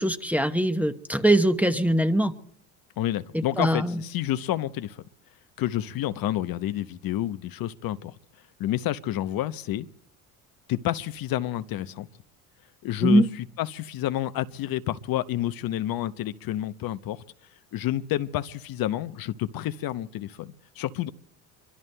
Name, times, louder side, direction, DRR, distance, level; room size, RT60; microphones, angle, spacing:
voice 1, 0.0-2.3 3.6-4.0 13.0-13.3, right 1 dB, 5° right, 0.9 m, -22 dB
voice 2, 3.0-5.0 5.6-8.2 8.6-9.9 10.7-12.1 12.8-17.2 17.7-21.1, left 13 dB, 55° left, 0.8 m, -29 dB
26.5 x 24.0 x 2.2 m
hypercardioid pair, 70°, 42 cm